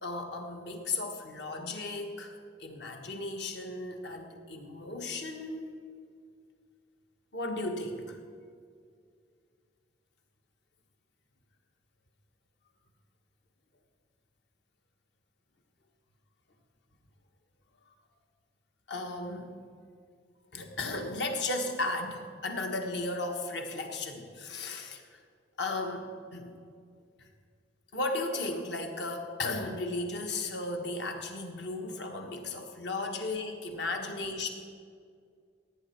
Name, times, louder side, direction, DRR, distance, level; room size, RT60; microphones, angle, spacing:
voice 1, 0.0-5.8 7.3-8.2 18.9-19.5 20.5-25.2 25.6-26.5 27.2-27.3 27.9-34.5, left 2 dB, 70° left, 3 dB, 1.4 m, -35 dB
16.5 x 9.4 x 4.5 m, 2.2 s
head